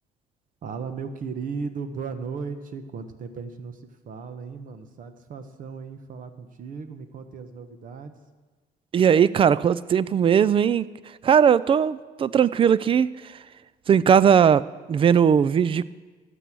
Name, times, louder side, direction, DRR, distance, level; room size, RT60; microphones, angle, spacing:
voice 1, 0.6-8.2, right 5 dB, 50° right, 1.1 m, -36 dB
voice 2, 8.9-10.9 11.2-13.4 13.9-15.9, right 8 dB, 30° right, 0.4 m, -19 dB
13.0 x 8.2 x 6.2 m
cardioid pair, 110°, 17 cm